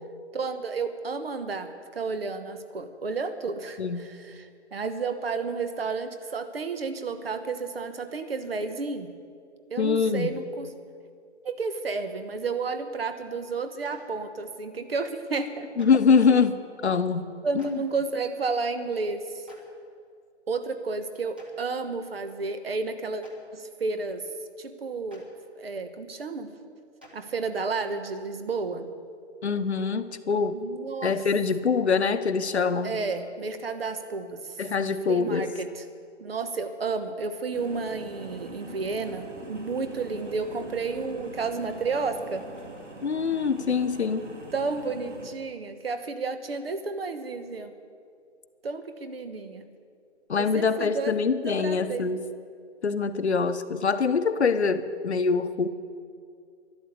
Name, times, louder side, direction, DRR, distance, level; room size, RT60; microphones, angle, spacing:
voice 1, 0.3-9.1 9.7-10.7 11.4-15.7 17.4-19.4 20.5-23.2 23.5-24.2 24.6-25.3 25.5-26.5 27.1-28.9 30.5-31.2 32.8-34.6 35.0-35.8 36.2-42.5 44.5-47.7 48.6-49.6 50.4-51.1 51.4-52.1, right 4 dB, 55° right, 10 dB, 1.3 m, -31 dB
voice 2, 3.8-4.1 9.8-10.3 15.8-17.3 17.5-17.8 29.4-30.6 31.0-33.0 34.6-35.5 43.0-44.3 50.3-52.3 52.8-55.7, left 5 dB, 65° left, 10 dB, 1.0 m, -24 dB
Clapping, 13.8-14.0 15.8-15.9 17.6-17.7 19.5-19.6 21.3-21.5 23.2-23.3 25.1-25.2 27.0-27.1, left 1 dB, 10° right, 0.6 m, -49 dB
sound 1, 37.5-45.3, right 2 dB, 90° right, 2.6 m, -43 dB
12.0 x 11.5 x 8.5 m, 2.3 s
figure-of-eight pair, 160°, 36 cm